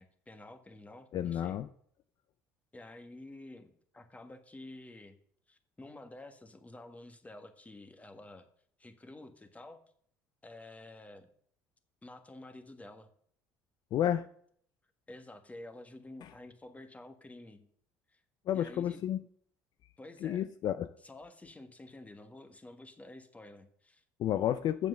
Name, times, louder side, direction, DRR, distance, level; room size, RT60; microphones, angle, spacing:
voice 1, 0.0-1.6 2.7-5.2 5.5-8.5 8.8-9.8 10.4-11.3 12.0-13.1 15.1-17.7 18.1-18.2 18.5-19.0 20.0-20.5 21.0-24.0, left 2 dB, 15° left, 8 dB, 1.6 m, -50 dB
voice 2, 1.1-1.7 13.9-14.3 16.2-16.3 18.5-19.2 20.2-20.9 24.2-24.9, left 11 dB, 55° left, 12 dB, 0.5 m, -31 dB
7.9 x 7.3 x 6.6 m, 0.62 s
hypercardioid pair, 65°, 8 cm